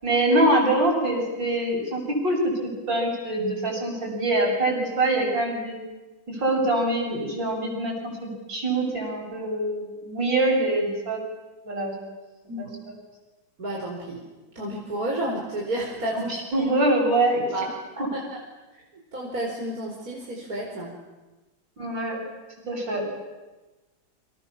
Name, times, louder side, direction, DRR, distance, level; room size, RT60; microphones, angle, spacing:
voice 1, 0.0-5.8 6.3-11.2 11.6-11.9 12.6-12.7 16.1-17.4 21.8-22.2 22.7-23.1, right 1 dB, 60° right, 0 dB, 8.2 m, -24 dB
voice 2, 13.6-14.2 14.5-16.7 17.5-17.7 18.1-18.2 19.1-20.9, right 1 dB, 45° right, -2 dB, 5.0 m, -31 dB
29.5 x 26.0 x 7.3 m, 1.2 s
omnidirectional pair, 2.3 m